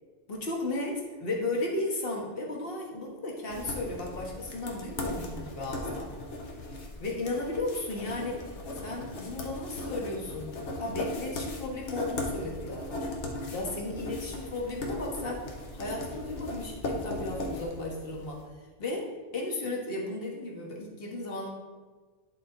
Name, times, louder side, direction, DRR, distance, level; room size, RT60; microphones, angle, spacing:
voice 1, 0.3-6.1 7.0-8.4 8.7-13.0 13.5-21.5, left 2 dB, 55° left, -1 dB, 1.5 m, -35 dB
sound 1, 3.5-18.3, left 1 dB, 85° left, 1.3 m, -38 dB
10.5 x 4.0 x 3.9 m, 1.5 s
omnidirectional pair, 1.2 m